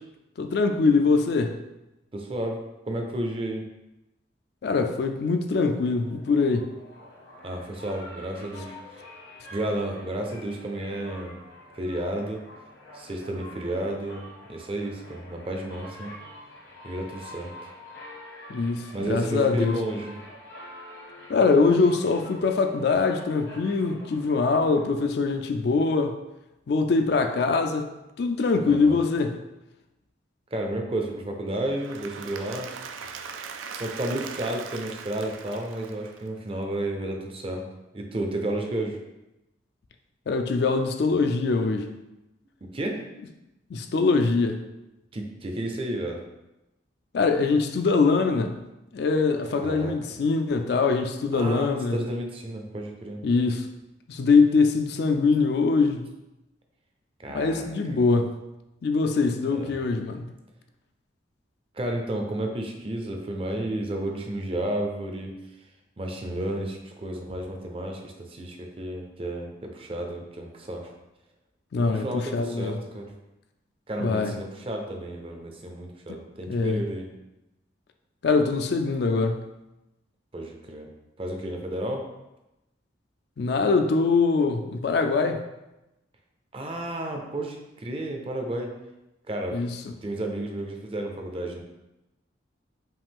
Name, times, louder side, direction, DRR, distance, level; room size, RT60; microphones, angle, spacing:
voice 1, 0.4-1.6 4.6-6.7 18.5-19.7 21.3-26.1 26.7-27.9 28.2-29.4 40.3-41.9 43.7-44.6 47.1-48.6 48.9-52.0 53.2-53.7 54.1-56.1 57.3-58.3 58.8-60.3 71.7-72.8 74.0-74.3 76.5-76.8 78.2-79.4 83.4-85.4 89.5-89.8, left 4 dB, 55° left, 6 dB, 0.3 m, -23 dB
voice 2, 2.1-3.7 7.4-9.0 9.5-11.4 11.7-12.4 12.9-16.1 16.8-17.5 18.9-20.1 28.7-29.0 30.5-32.7 33.7-37.6 37.9-39.0 42.7-43.0 45.1-46.2 49.5-49.9 51.3-53.2 57.2-58.0 59.5-59.8 61.7-65.3 66.0-70.9 71.8-73.1 73.9-77.1 80.3-80.9 81.2-82.1 86.5-88.7 89.3-89.6 90.0-91.6, right 1 dB, 30° right, 3 dB, 0.5 m, -32 dB
sound 1, 6.0-25.4, left 1 dB, 70° left, 1.2 m, -46 dB
Applause / Crowd, 31.6-36.6, right 6 dB, 90° right, 0.4 m, -40 dB
5.4 x 2.4 x 3.6 m, 0.95 s
head